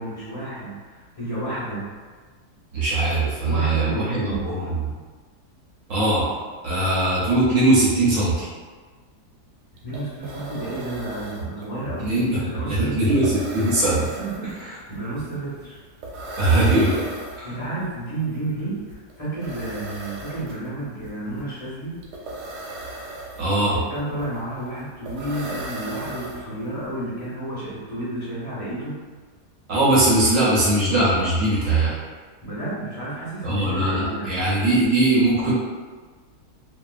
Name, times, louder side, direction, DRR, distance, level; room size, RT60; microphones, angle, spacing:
voice 1, 0.0-1.9 3.4-4.4 9.8-13.0 14.2-15.8 17.4-22.0 23.7-29.0 32.4-34.4, right 1 dB, 30° left, -9 dB, 0.8 m, -31 dB
voice 2, 2.7-4.9 5.9-6.3 6.6-8.5 12.0-12.4 12.7-14.1 16.4-17.0 17.4-17.5 23.4-23.8 29.7-32.0 33.4-35.5, right 2 dB, 65° right, -7 dB, 0.9 m, -20 dB
sound 1, 9.5-9.6 9.8-26.9, right 1 dB, 80° right, 1.1 m, -37 dB
2.7 x 2.2 x 2.3 m, 1.5 s
omnidirectional pair, 1.7 m